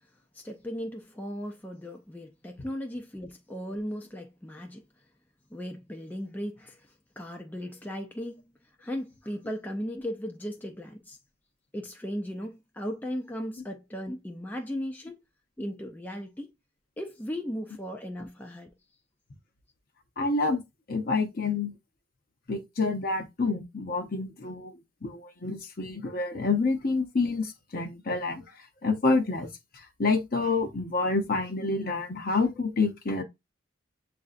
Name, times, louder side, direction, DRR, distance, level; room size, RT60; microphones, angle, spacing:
voice 1, 0.3-4.8 5.5-6.9 7.2-8.5 8.8-11.2 11.7-15.2 15.6-16.5 17.0-18.8, equal, 10° left, 0.4 m, -37 dB
voice 2, 20.2-20.6 20.9-21.8 22.5-24.7 25.0-28.4 28.8-29.5 29.7-33.2, left 3 dB, 45° left, 0.7 m, -28 dB
7.5 x 2.6 x 2.4 m
head